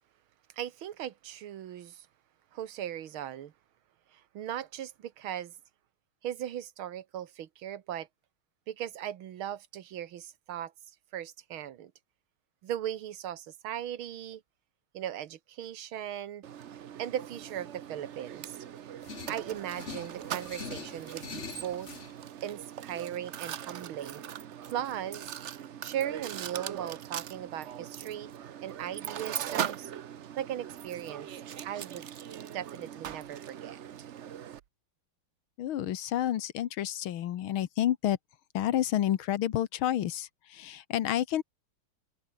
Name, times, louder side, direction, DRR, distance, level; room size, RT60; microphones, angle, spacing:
voice 1, 0.6-2.1 2.5-3.5 4.1-5.5 6.2-8.1 8.7-10.7 11.1-11.9 12.6-14.4 14.9-16.4 17.0-18.6 19.3-21.9 22.4-24.2 24.7-25.3 25.8-28.3 28.6-29.9 30.4-31.3 31.6-32.1 32.5-34.1, right 11 dB, 90° right, 2.0 m, -38 dB
Mechanisms, 16.4-34.6, right 10 dB, 65° right, 0.7 m, -40 dB
sound 1, 19.0-22.1, left 5 dB, 35° left, 1.9 m, -44 dB
voice 2, 35.6-38.2 38.5-41.4, left 12 dB, 85° left, 1.9 m, -29 dB
omnidirectional pair, 2.2 m